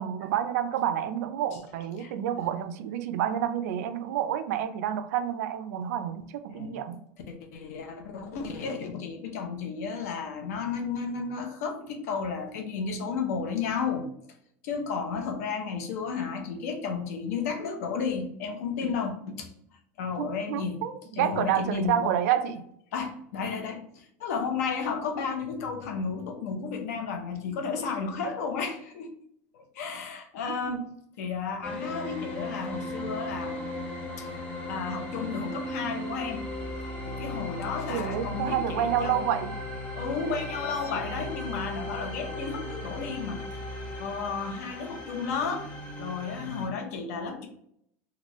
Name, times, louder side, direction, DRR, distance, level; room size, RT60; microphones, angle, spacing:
voice 1, 0.0-7.0 20.2-22.6 30.5-30.9 37.9-39.5, right 10 dB, 85° right, 0.4 m, -29 dB
voice 2, 7.3-14.1 14.6-19.5 20.0-20.8 21.2-22.1 22.9-29.1 29.5-30.9 31.2-33.6 34.2-34.3 34.7-36.5 37.0-39.3 39.9-43.5 44.0-45.7 46.0-47.5, left 5 dB, 90° left, 0.7 m, -33 dB
sound 1, 31.6-46.7, left 1 dB, 15° left, 0.7 m, -37 dB
3.0 x 2.4 x 3.0 m
supercardioid pair, 150°, 8 cm